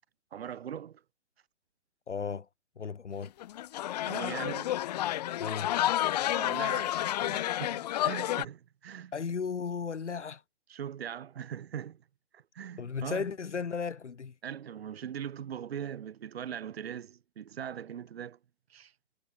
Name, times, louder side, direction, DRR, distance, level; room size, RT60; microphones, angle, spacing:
voice 1, 0.3-1.0 4.0-4.7 6.4-9.1 10.7-12.0 12.3-13.3 14.4-18.4 18.7-18.9, right 9 dB, 60° right, 1.3 m, -40 dB
voice 2, 2.1-2.5 2.8-3.3 5.4-5.7 9.1-10.4 12.8-14.3, left 6 dB, 75° left, 3.8 m, -35 dB
sound 1, 3.2-8.4, left 13 dB, 35° left, 1.0 m, -30 dB
hypercardioid pair, 145°, 35 cm